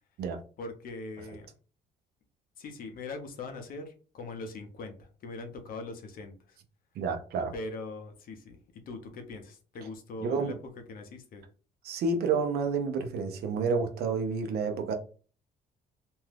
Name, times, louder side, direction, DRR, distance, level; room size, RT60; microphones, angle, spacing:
voice 1, 0.6-1.5 2.6-6.6 7.5-10.5 10.9-11.5, left 3 dB, 60° left, 0.7 m, -41 dB
voice 2, 7.0-7.5 10.2-10.5 11.8-14.9, right 4 dB, 70° right, 0.6 m, -29 dB
2.6 x 2.3 x 3.3 m
cardioid pair, 105°, 17 cm